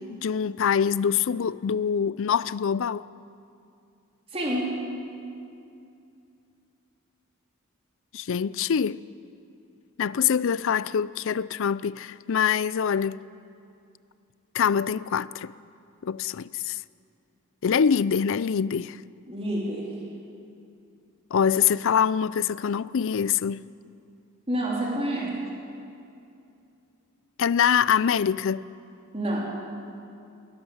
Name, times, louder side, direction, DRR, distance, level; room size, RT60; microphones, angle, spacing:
voice 1, 0.0-3.1 8.1-9.0 10.0-13.2 14.5-15.5 16.0-16.8 17.6-19.0 21.3-23.6 27.4-28.7, left 7 dB, 60° left, 0.4 m, -24 dB
voice 2, 4.3-4.9 19.3-19.9 24.5-25.4 29.1-29.6, right 1 dB, 25° right, 3.5 m, -28 dB
22.0 x 17.0 x 7.2 m
head